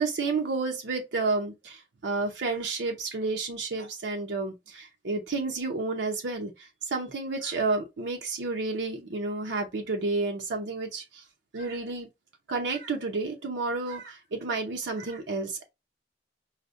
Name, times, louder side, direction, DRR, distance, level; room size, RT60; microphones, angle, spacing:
voice 1, 0.0-11.2 11.5-12.1 12.5-15.6, right 3 dB, 80° right, 0.7 m, -31 dB
4.9 x 2.1 x 2.5 m
head